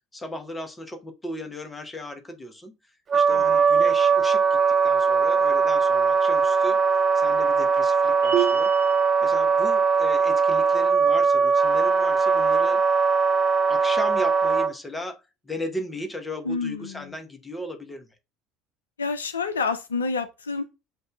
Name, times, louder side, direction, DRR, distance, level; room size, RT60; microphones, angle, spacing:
voice 1, 0.1-2.7 3.1-4.6 4.8-6.8 7.1-8.7 9.2-12.8 13.7-18.1, left 1 dB, 15° left, 1.1 m, -36 dB
Wind instrument woodwind instrument, 3.1-14.7, right 5 dB, 35° right, 0.7 m, -20 dB
sound 1, 8.2-9.1, right 11 dB, 80° right, 1.0 m, -27 dB
voice 2, 16.4-17.1 19.0-20.6, left 4 dB, 80° left, 0.3 m, -28 dB
7.9 x 2.6 x 2.3 m
figure-of-eight pair, 60°, 0 cm